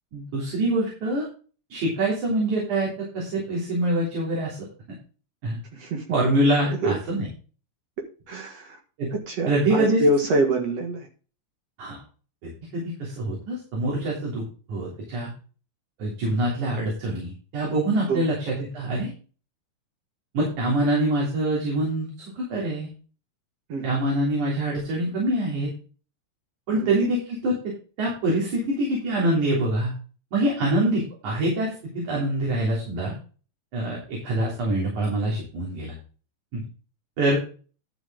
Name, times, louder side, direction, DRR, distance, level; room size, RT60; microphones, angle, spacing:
voice 1, 0.1-1.3 1.7-4.6 5.4-5.6 6.1-7.3 9.0-9.1 9.5-10.0 11.8-12.0 12.4-14.4 14.7-15.3 16.0-19.1 20.3-22.9 23.8-25.7 26.7-27.7 28.0-29.9 30.3-33.1 33.7-35.9 36.5-36.6 37.2-37.4, right 1 dB, 90° right, -3 dB, 4.8 m, -25 dB
voice 2, 5.7-6.0 6.7-7.0 8.3-8.8 9.1-11.1 18.1-18.3 23.7-24.1 26.7-27.1, right 1 dB, 60° right, 2 dB, 2.7 m, -26 dB
12.0 x 7.2 x 3.8 m, 0.37 s
omnidirectional pair, 3.3 m